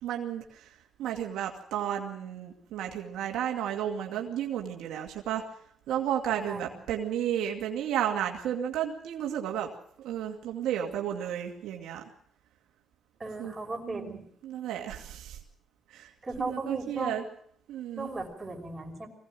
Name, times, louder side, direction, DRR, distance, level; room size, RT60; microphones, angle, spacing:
voice 1, 0.0-5.4 5.9-9.7 10.0-12.0 13.4-13.5 13.8-15.4 15.9-16.1 16.4-17.2 17.7-18.1, right 10 dB, 90° right, 2 dB, 2.4 m, -33 dB
voice 2, 6.5-6.8 13.2-14.2 16.2-17.2 18.0-19.1, right 2 dB, 20° right, 2 dB, 5.7 m, -36 dB
22.0 x 17.5 x 7.7 m, 0.65 s
cardioid pair, 90°, 0 cm